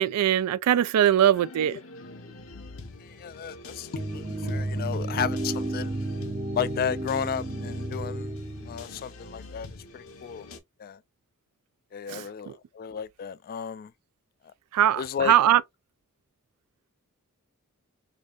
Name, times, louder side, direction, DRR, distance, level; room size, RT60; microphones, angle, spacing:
voice 1, 0.0-1.8 12.1-12.6 14.7-15.6, right 11 dB, 90° right, 0.3 m, -22 dB
sound 1, 1.3-10.6, left 3 dB, 65° left, 0.8 m, -45 dB
voice 2, 3.0-6.0 6.5-8.3 8.7-9.7 9.9-10.5 10.8-11.0 11.9-13.9 15.0-15.4, left 8 dB, 40° left, 0.3 m, -33 dB
sound 2, 3.9-8.9, right 1 dB, 25° right, 0.6 m, -32 dB
4.9 x 2.7 x 2.4 m
head